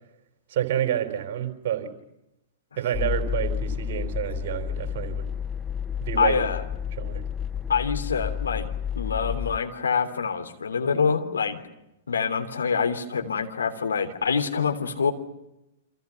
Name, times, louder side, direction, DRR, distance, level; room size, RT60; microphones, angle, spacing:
voice 1, 0.5-1.9 2.8-5.3 6.0-6.4 6.9-7.2, right 11 dB, 50° right, 7 dB, 4.2 m, -29 dB
sound 1, 2.9-9.6, left 8 dB, 10° left, 0.8 m, -30 dB
voice 2, 6.2-6.6 7.7-8.7 8.9-11.6 12.1-15.1, left 6 dB, 75° left, 6 dB, 3.2 m, -25 dB
29.5 x 26.0 x 5.9 m, 0.90 s
figure-of-eight pair, 105°, 0 cm